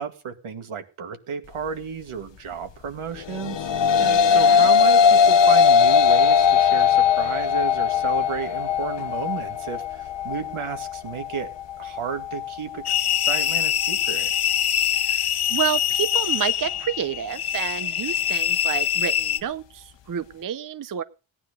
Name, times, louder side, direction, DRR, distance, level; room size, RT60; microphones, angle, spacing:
voice 1, 0.0-3.7 4.3-11.5 11.8-14.3, right 6 dB, 80° right, 7 dB, 2.3 m, -33 dB
sound 1, 3.3-12.5, left 7 dB, 60° left, 1.0 m, -19 dB
voice 2, 4.0-4.7 14.9-21.0, right 9 dB, 40° right, 14 dB, 0.7 m, -30 dB
sound 2, 12.9-19.4, left 9 dB, 85° left, 1.3 m, -24 dB
17.5 x 10.0 x 5.2 m, 0.34 s
wide cardioid pair, 120°, 49 cm